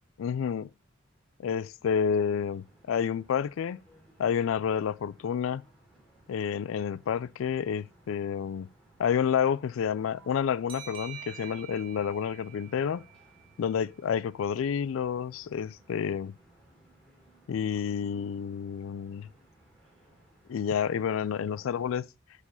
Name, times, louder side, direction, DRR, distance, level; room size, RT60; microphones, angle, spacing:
voice 1, 0.2-0.7 1.4-3.8 4.2-5.6 6.3-8.7 9.0-13.1 13.6-16.3 17.5-19.3 20.5-22.0, left 7 dB, 75° left, 0.3 m, -29 dB
sound 1, 2.1-21.9, right 1 dB, 5° left, 3.2 m, -61 dB
sound 2, 10.7-14.0, right 9 dB, 25° right, 1.1 m, -47 dB
8.0 x 5.0 x 3.7 m
head